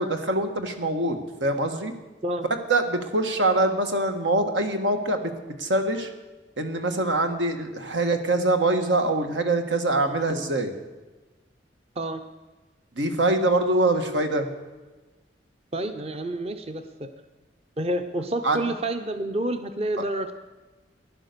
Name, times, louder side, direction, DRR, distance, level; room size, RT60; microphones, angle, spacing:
voice 1, 0.0-1.9 2.7-5.3 5.6-6.1 6.6-10.7 12.9-14.5 18.4-18.7 20.0-20.1, right 2 dB, 85° right, 6 dB, 1.6 m, -24 dB
voice 2, 15.7-17.1 17.8-20.4, right 1 dB, 35° right, 8 dB, 0.7 m, -29 dB
15.0 x 11.0 x 6.8 m, 1.2 s
head